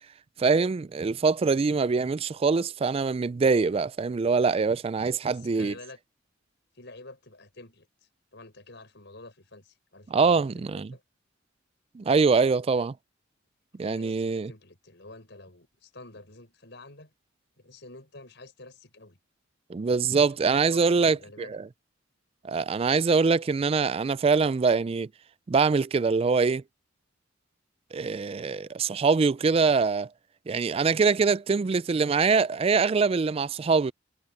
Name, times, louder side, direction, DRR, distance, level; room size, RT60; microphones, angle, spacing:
voice 1, 0.4-5.7 10.1-10.9 11.9-12.9 13.8-14.5 19.7-21.6 22.4-25.1 25.5-26.6 27.9-30.1 30.5-33.9, right 4 dB, 30° right, 0.3 m, -24 dB
voice 2, 5.0-6.0 6.7-7.9 8.3-11.0 13.8-17.1 17.6-19.2 20.3-21.6, left 2 dB, 60° left, 6.7 m, -48 dB
head